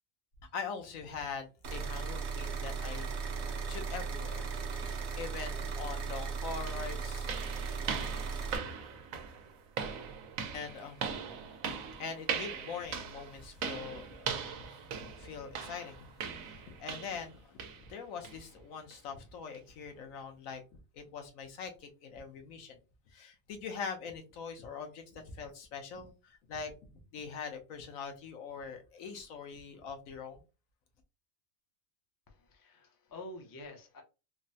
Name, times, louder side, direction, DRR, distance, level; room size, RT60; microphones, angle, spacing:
voice 1, 0.5-4.5 4.7-7.3 10.5-11.0 11.9-20.6 20.9-22.8 23.1-26.7 27.1-30.4, left 5 dB, 80° left, 1.1 m, -43 dB
sound 1, 1.6-8.6, right 5 dB, 60° right, 0.8 m, -37 dB
sound 2, 6.1-6.2 6.7-17.3 17.6-17.9 18.2-18.4 18.9-19.0 19.5-19.6, right 6 dB, 90° right, 1.1 m, -40 dB
voice 2, 32.3-34.0, left 1 dB, 30° left, 0.3 m, -48 dB
3.6 x 2.0 x 2.6 m
omnidirectional pair, 1.4 m